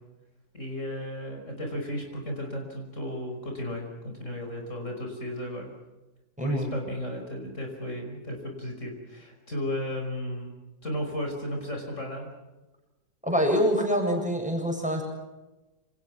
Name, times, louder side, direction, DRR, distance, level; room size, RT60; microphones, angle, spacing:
voice 1, 0.5-5.7 6.4-10.5 10.8-12.3, left 1 dB, 45° left, 2 dB, 5.7 m, -34 dB
voice 2, 6.4-6.7 13.2-15.0, equal, 5° right, 2 dB, 7.3 m, -25 dB
28.5 x 27.5 x 6.1 m, 1.1 s
omnidirectional pair, 1.8 m